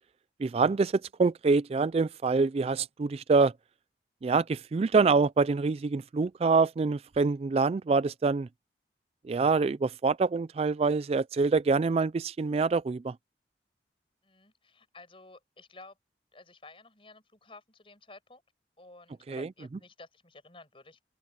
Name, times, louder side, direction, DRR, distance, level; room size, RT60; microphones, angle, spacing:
voice 1, 0.4-3.5 4.2-8.5 9.3-13.1 19.3-19.5, right 4 dB, 35° right, 0.3 m, -25 dB
voice 2, 14.2-16.0 16.3-18.4 18.8-21.0, left 3 dB, 30° left, 6.8 m, -53 dB
open air
head